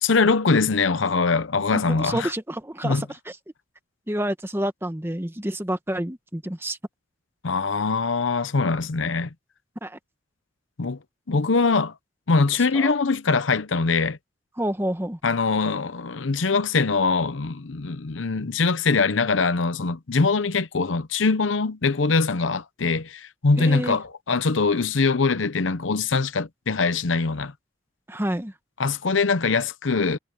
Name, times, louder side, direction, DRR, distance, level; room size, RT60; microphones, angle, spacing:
voice 1, 0.0-2.3 2.8-3.1 7.4-9.3 10.8-11.0 11.3-11.9 12.3-14.2 15.2-27.5 28.8-30.2, left 4 dB, 75° left, 0.8 m, -22 dB
voice 2, 1.9-3.1 4.1-6.8 9.8-10.0 12.7-12.9 14.6-15.2 23.6-24.0 28.1-28.5, right 1 dB, 10° right, 1.2 m, -28 dB
head